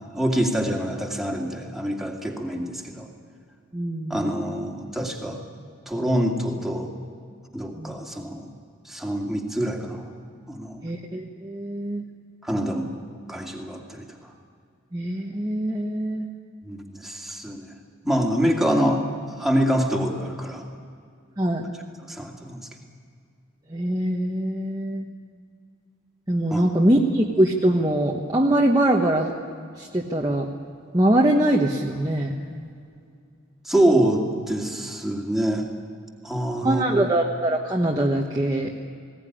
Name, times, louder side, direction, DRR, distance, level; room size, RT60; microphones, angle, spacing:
voice 1, 0.1-3.1 4.1-5.4 5.9-6.9 7.5-8.5 8.9-10.1 10.5-10.9 12.4-12.9 13.3-14.1 16.6-17.7 18.0-20.6 22.1-22.7 26.5-26.6 33.6-35.7 36.2-36.8, right 1 dB, ahead, 0 dB, 2.3 m, -25 dB
voice 2, 3.7-4.3 7.7-8.0 10.8-12.0 14.9-16.3 21.4-21.6 23.7-25.1 26.3-29.3 29.8-30.5 30.9-32.3 36.6-38.7, right 1 dB, 20° right, -1 dB, 1.2 m, -23 dB
20.0 x 17.5 x 10.0 m, 2.3 s
head